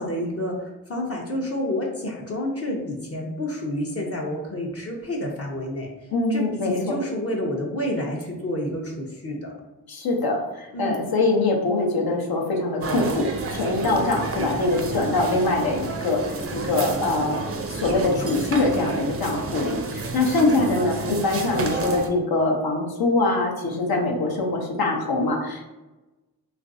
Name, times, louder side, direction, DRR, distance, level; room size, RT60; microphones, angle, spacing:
voice 1, 0.0-5.9 6.3-9.5 10.7-11.1, left 1 dB, 40° left, -2 dB, 0.6 m, -29 dB
voice 2, 6.1-7.0 9.9-16.2 16.5-17.4 17.7-25.7, left 2 dB, 80° left, -1 dB, 0.7 m, -23 dB
sound 1, 12.8-22.1, right 3 dB, 40° right, 0.4 m, -30 dB
3.1 x 2.5 x 2.5 m, 1.1 s
cardioid pair, 65°, 36 cm